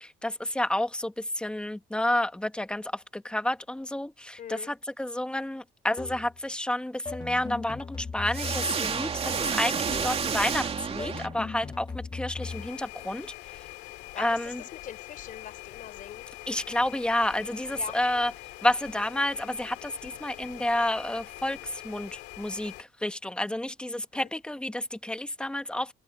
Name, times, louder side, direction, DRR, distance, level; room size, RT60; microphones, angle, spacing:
voice 1, 0.0-13.6 14.2-14.6 16.5-18.3 18.6-25.9, left 1 dB, 5° left, 1.8 m, -30 dB
voice 2, 4.4-4.7 13.8-16.3 17.7-18.0 24.1-24.3, left 9 dB, 55° left, 4.9 m, -43 dB
sound 1, 6.0-6.4 7.1-9.0 9.9-10.3 11.0-12.7, left 4 dB, 25° left, 2.0 m, -38 dB
sound 2, 8.3-11.7, right 6 dB, 35° right, 3.0 m, -30 dB
sound 3, 12.4-22.8, left 18 dB, 85° left, 2.6 m, -44 dB
cardioid pair, 110°, 17 cm